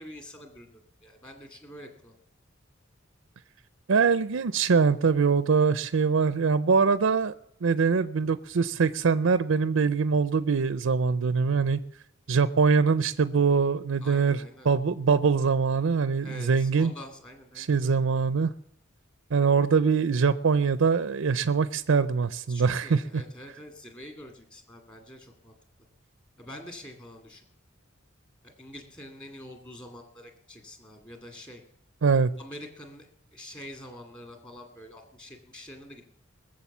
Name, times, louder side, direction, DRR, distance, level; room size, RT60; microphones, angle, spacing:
voice 1, 0.0-2.1 14.0-14.7 16.2-17.8 22.5-25.5 26.4-27.4 28.4-31.6 32.4-36.0, left 1 dB, 20° left, 4 dB, 2.2 m, -46 dB
voice 2, 3.9-7.3 7.6-11.8 12.3-14.4 14.6-16.9 17.6-18.5 19.3-23.2 32.0-32.3, right 5 dB, 70° right, 13 dB, 0.5 m, -23 dB
21.0 x 7.6 x 7.2 m, 0.75 s
head